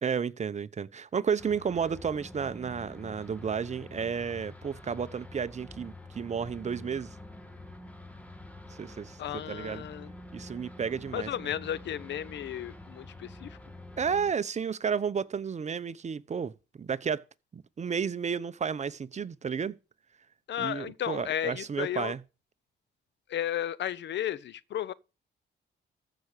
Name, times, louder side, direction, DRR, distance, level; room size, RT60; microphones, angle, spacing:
voice 1, 0.0-7.1 8.7-9.2 9.5-9.8 10.3-11.3 14.0-17.2 17.5-19.8 20.6-22.2, right 6 dB, 35° right, 0.8 m, -32 dB
sound 1, 1.4-14.3, left 1 dB, 5° left, 1.8 m, -47 dB
voice 2, 9.2-10.1 11.1-13.6 20.5-22.1 23.3-24.9, left 10 dB, 65° left, 0.8 m, -34 dB
14.0 x 6.0 x 6.6 m
cardioid pair, 90°, 20 cm